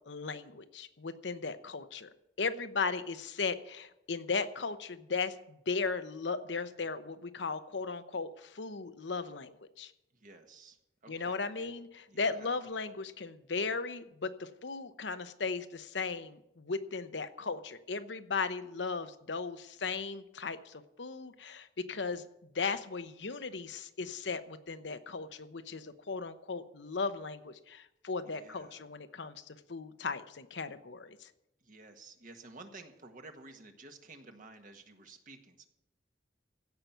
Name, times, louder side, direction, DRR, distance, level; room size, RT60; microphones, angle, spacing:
voice 1, 0.1-2.1 2.4-9.9 11.1-22.3 22.5-31.3, left 4 dB, 80° left, 11 dB, 0.9 m, -37 dB
voice 2, 10.1-11.7 12.1-12.7 13.0-13.1 28.3-28.9 31.6-35.7, right 3 dB, 50° right, 5 dB, 1.6 m, -53 dB
16.0 x 5.9 x 9.2 m, 0.86 s
head